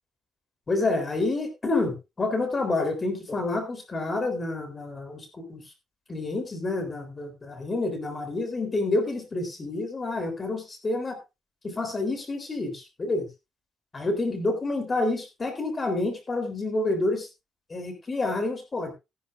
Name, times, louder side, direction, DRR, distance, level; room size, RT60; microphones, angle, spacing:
voice 1, 0.7-5.6 6.1-11.2 11.6-13.3 13.9-17.3 17.7-18.9, left 2 dB, 30° left, 7 dB, 3.7 m, -28 dB
14.0 x 12.0 x 2.5 m, 0.25 s
cardioid pair, 90°, 0 cm